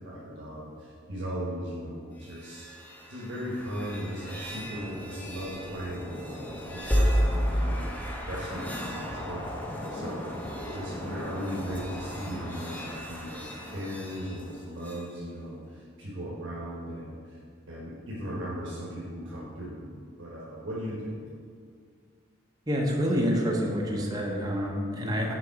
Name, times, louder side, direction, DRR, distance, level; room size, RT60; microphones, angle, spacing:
voice 1, 0.0-2.7 3.1-10.3 10.6-19.8 20.2-21.2, equal, 70° right, -6 dB, 1.3 m, -37 dB
sound 1, 2.2-15.1, equal, 10° left, 0.8 m, -33 dB
voice 2, 22.7-25.3, equal, 20° right, -1 dB, 0.9 m, -27 dB
6.8 x 4.6 x 4.9 m, 2.1 s
head